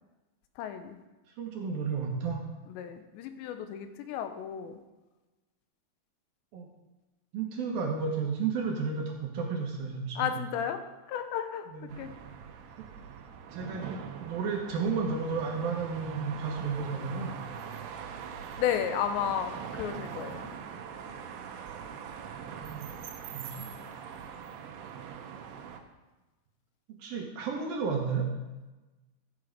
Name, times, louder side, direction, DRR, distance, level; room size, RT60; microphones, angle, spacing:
voice 1, 0.6-1.0 2.7-4.8 10.2-10.8 11.1-11.7 12.0-12.1 18.6-20.5, left 9 dB, 90° left, 8 dB, 3.0 m, -33 dB
voice 2, 1.4-2.4 6.5-6.6 7.3-10.4 11.7-12.0 12.8-12.9 13.5-17.4 22.4-22.9 23.3-23.7 27.0-28.3, right 5 dB, 65° right, 0 dB, 2.8 m, -32 dB
sound 1, 11.9-25.8, right 7 dB, 90° right, 3.3 m, -42 dB
14.5 x 7.9 x 5.0 m, 1.1 s
omnidirectional pair, 5.1 m